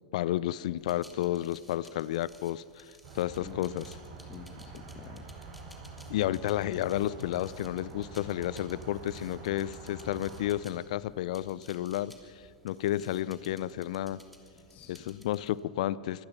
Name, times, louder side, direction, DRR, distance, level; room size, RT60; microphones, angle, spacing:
voice 1, 0.1-2.9 3.1-3.8 6.1-12.1 12.6-14.2 15.2-16.3, left 13 dB, 60° left, 20 dB, 0.6 m, -31 dB
sound 1, 0.8-15.6, equal, ahead, 3.1 m, -57 dB
sound 2, 3.0-10.5, right 3 dB, 50° right, 7.3 m, -46 dB
voice 2, 3.2-3.7 4.2-5.4 14.6-15.2, left 9 dB, 35° left, 6 dB, 1.5 m, -49 dB
25.0 x 20.0 x 6.0 m, 2.3 s
hypercardioid pair, 95°, 4 cm